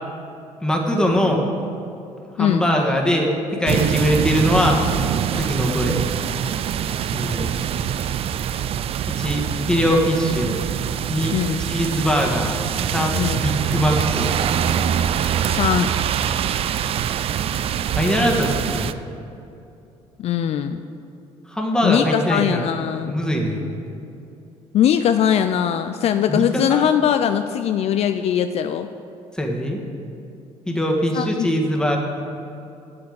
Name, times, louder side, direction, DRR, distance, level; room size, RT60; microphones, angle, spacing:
voice 1, 0.6-1.5 2.3-4.8 5.4-6.0 7.1-7.4 9.1-10.5 11.1-12.6 12.9-14.3 17.9-18.9 21.5-22.7 23.1-23.6 26.3-26.9 29.3-29.8 30.7-32.0, equal, 5° left, 0 dB, 1.7 m, -21 dB
sound 1, 3.7-18.9, right 9 dB, 55° right, 0.4 m, -24 dB
voice 2, 11.3-11.6 13.1-13.4 15.5-15.9 20.2-20.8 21.8-23.1 24.7-28.9 31.1-31.5, left 9 dB, 60° left, 9 dB, 0.4 m, -21 dB
8.5 x 7.0 x 8.1 m, 2.7 s
cardioid pair, 95°, 12 cm